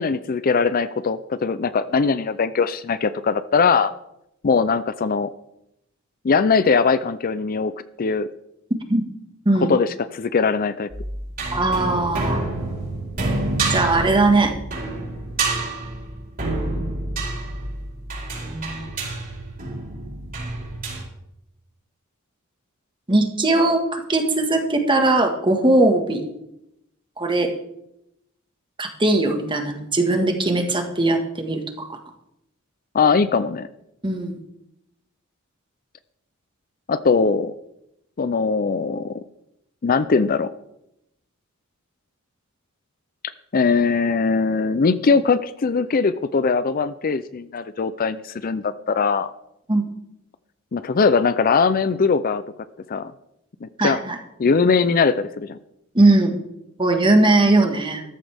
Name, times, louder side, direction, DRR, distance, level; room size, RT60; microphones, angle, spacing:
voice 1, 0.0-3.9 4.4-5.3 6.2-8.3 9.6-10.9 32.9-33.7 36.9-37.5 38.2-39.2 39.8-40.5 43.5-49.3 50.7-52.4 52.9-53.1 53.6-54.0 54.4-55.6, left 5 dB, 45° left, 14 dB, 0.5 m, -20 dB
voice 2, 8.7-9.0 9.4-9.7 11.5-12.4 13.7-14.5 18.4-18.8 23.1-26.2 27.2-27.5 28.8-32.0 34.0-34.4 49.7-49.8 53.8-54.2 55.9-56.4 56.8-58.0, right 2 dB, 25° right, 5 dB, 1.6 m, -19 dB
sound 1, 10.9-21.0, right 2 dB, 45° right, 4.9 m, -28 dB
14.0 x 13.5 x 3.5 m, 0.82 s
head